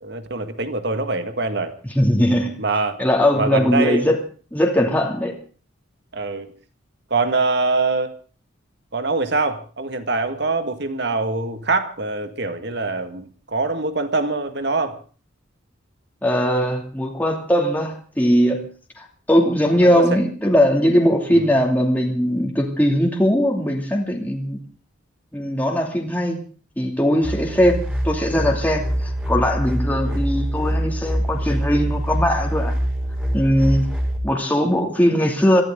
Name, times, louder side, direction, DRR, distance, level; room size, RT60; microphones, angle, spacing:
voice 1, 0.0-1.7 2.6-3.0 3.3-4.1 6.1-6.5 7.1-8.1 8.9-15.0 19.8-20.0 21.3-21.5 30.0-30.3, right 3 dB, 55° right, 9 dB, 1.9 m, -24 dB
voice 2, 2.0-2.6 3.0-4.2 4.5-5.4 16.2-18.6 19.0-24.6 25.3-26.4 26.8-27.8 28.0-32.7 33.3-33.9 34.2-35.6, equal, 10° left, 1 dB, 2.6 m, -19 dB
sound 1, 27.2-34.2, equal, 5° right, 4.8 m, -24 dB
23.5 x 15.5 x 3.8 m, 0.38 s
head